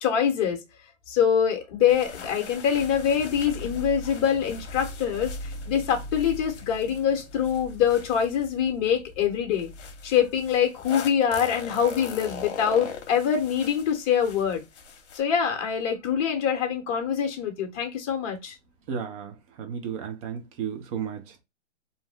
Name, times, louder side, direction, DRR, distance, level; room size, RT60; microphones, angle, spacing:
voice 1, 0.0-0.6 1.1-9.7 10.0-14.6 15.1-18.6, left 8 dB, 30° left, 0.9 m, -24 dB
sound 1, 1.9-8.9 9.6-15.2, left 6 dB, 65° left, 0.8 m, -41 dB
sound 2, 2.7-12.2 12.6-13.0 13.7-13.9, equal, 5° left, 1.0 m, -41 dB
voice 2, 18.9-21.4, right 7 dB, 30° right, 0.6 m, -34 dB
2.6 x 2.1 x 3.4 m
hypercardioid pair, 135°, 36 cm